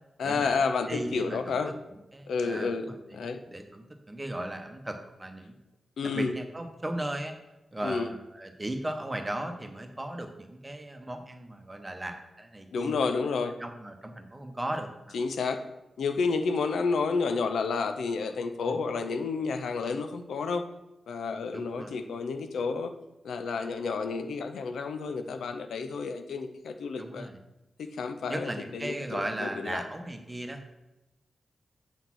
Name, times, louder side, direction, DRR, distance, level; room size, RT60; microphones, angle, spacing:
voice 1, 0.2-1.8 2.3-3.4 6.0-6.3 7.8-8.1 12.7-13.6 15.1-15.6 16.0-20.6 21.1-22.9 23.2-27.3 27.8-29.8, left 4 dB, 90° left, 7 dB, 0.6 m, -30 dB
voice 2, 0.9-1.6 2.1-3.0 3.2-5.5 6.1-7.3 7.7-12.9 13.6-15.2 18.7-18.8 21.5-21.9 25.2-25.4 27.0-27.4 28.3-30.7, right 1 dB, 20° right, 6 dB, 1.1 m, -37 dB
7.2 x 3.9 x 6.2 m, 0.99 s
cardioid pair, 75°, 0 cm